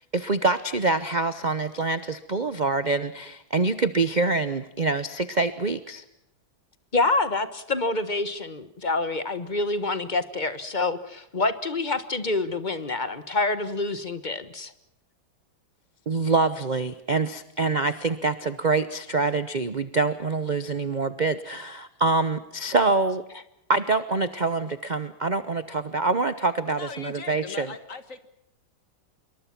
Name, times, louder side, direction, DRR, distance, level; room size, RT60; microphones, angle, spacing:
voice 1, 0.1-6.0 16.1-23.2 23.7-27.7, right 3 dB, 45° right, 13 dB, 0.6 m, -25 dB
voice 2, 6.9-14.7, left 3 dB, 25° left, 12 dB, 1.3 m, -27 dB
voice 3, 26.7-28.3, left 4 dB, 45° left, 11 dB, 1.9 m, -39 dB
26.5 x 23.0 x 6.0 m, 0.80 s
omnidirectional pair, 2.1 m